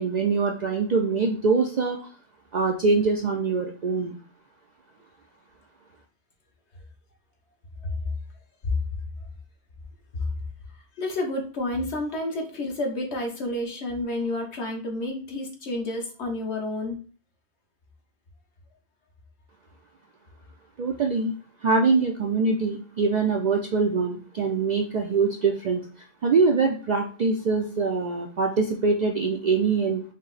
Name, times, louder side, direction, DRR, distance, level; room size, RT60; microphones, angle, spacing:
voice 1, 0.0-2.0 2.5-4.2 20.8-21.3 21.6-25.8 26.2-30.0, right 4 dB, 60° right, 2 dB, 0.4 m, -23 dB
voice 2, 11.0-17.0, left 1 dB, 65° left, 2 dB, 1.3 m, -30 dB
5.3 x 2.1 x 3.9 m, 0.41 s
omnidirectional pair, 1.2 m